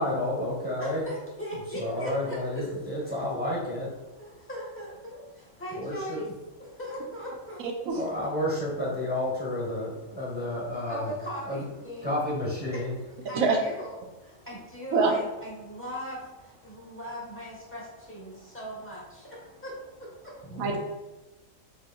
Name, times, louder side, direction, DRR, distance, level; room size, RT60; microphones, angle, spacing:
voice 1, 0.0-1.1 1.7-4.5 5.7-6.3 7.9-11.1 11.4-11.6 12.0-13.0 14.3-14.5 16.6-17.0 18.3-18.4 20.4-20.8, left 1 dB, 10° right, -8 dB, 1.0 m, -31 dB
voice 2, 0.8-2.6 4.2-6.3 6.6-7.6 10.9-12.1 13.3-14.0 14.2-20.3, equal, 10° left, -6 dB, 1.1 m, -39 dB
voice 3, 7.6-8.0 13.3-13.6 14.9-15.1 20.6-20.8, right 4 dB, 85° right, 2 dB, 1.1 m, -24 dB
5.0 x 2.9 x 2.3 m, 1.1 s
omnidirectional pair, 1.4 m